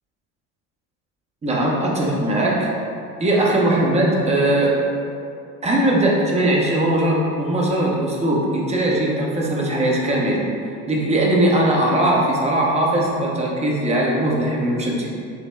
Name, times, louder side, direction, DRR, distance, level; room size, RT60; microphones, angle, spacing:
voice 1, 1.4-2.7 3.2-4.7 5.6-10.4 10.9-15.1, right 1 dB, 15° right, -3 dB, 0.7 m, -19 dB
6.0 x 2.0 x 2.3 m, 2.5 s
hypercardioid pair, 65°, 43 cm